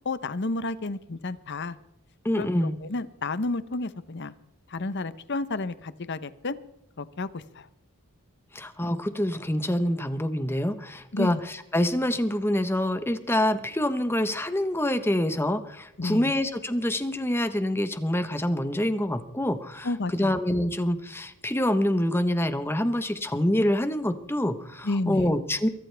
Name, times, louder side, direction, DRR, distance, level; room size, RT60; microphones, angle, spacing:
voice 1, 0.0-1.8 2.4-4.3 4.7-6.5 7.0-7.7 11.1-11.4 16.0-16.3 19.8-20.3 24.8-25.3, left 2 dB, 50° left, 15 dB, 0.8 m, -31 dB
voice 2, 2.2-2.8 8.5-19.9 20.1-25.7, left 1 dB, 10° left, 10 dB, 1.0 m, -26 dB
23.0 x 13.5 x 3.4 m, 0.88 s
head